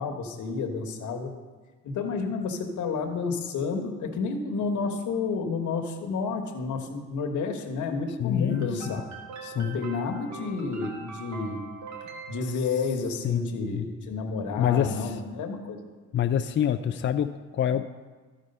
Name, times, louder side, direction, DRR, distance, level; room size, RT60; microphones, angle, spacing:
voice 1, 0.0-1.3 1.8-9.0 9.5-11.6 12.3-15.9, left 4 dB, 75° left, 4 dB, 1.3 m, -30 dB
voice 2, 8.2-8.8 9.4-9.8 13.2-13.9 14.6-15.2 16.1-17.8, left 9 dB, 40° left, 8 dB, 0.4 m, -26 dB
sound 1, 8.5-13.1, right 4 dB, 65° right, 1.7 m, -43 dB
13.5 x 4.9 x 5.4 m, 1.4 s
cardioid pair, 90°, 30 cm